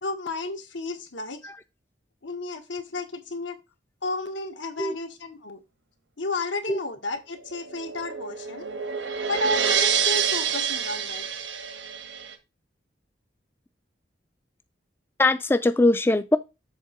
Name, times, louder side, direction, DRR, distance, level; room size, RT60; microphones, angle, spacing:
voice 1, 0.0-1.5 2.2-3.6 4.0-5.6 6.2-8.7 9.2-11.2, left 2 dB, 90° left, 1.6 m, -32 dB
sound 1, 7.5-12.3, right 7 dB, 85° right, 1.4 m, -27 dB
voice 2, 15.2-16.4, left 2 dB, 10° left, 0.3 m, -21 dB
7.4 x 3.7 x 5.8 m
head